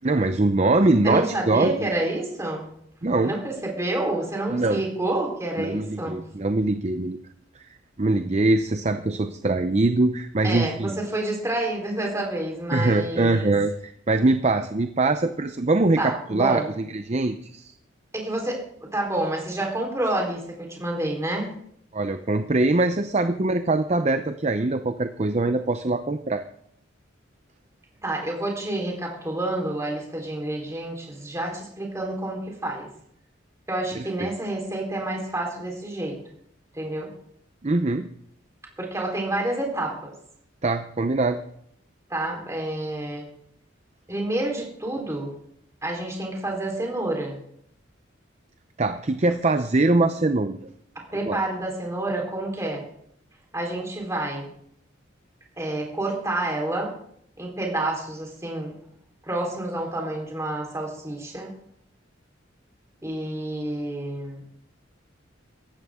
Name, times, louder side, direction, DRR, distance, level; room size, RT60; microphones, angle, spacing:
voice 1, 0.0-1.9 3.0-3.3 4.5-4.8 5.6-7.2 8.0-11.0 12.7-17.7 21.9-26.4 33.9-34.3 37.6-38.1 40.6-41.4 48.8-50.6 51.2-51.4, right 2 dB, 35° right, 8 dB, 0.6 m, -23 dB
voice 2, 1.0-2.7 3.2-6.2 10.4-13.5 16.0-16.7 18.1-18.6 18.9-21.5 28.0-32.9 33.7-36.2 36.7-37.1 38.8-40.1 42.1-43.3 44.1-45.3 45.8-47.4 51.1-52.9 53.5-54.5 55.6-56.9 57.4-58.7 59.2-61.5 63.0-64.4, right 1 dB, 15° right, 0 dB, 3.9 m, -28 dB
18.0 x 14.5 x 3.7 m, 0.70 s
head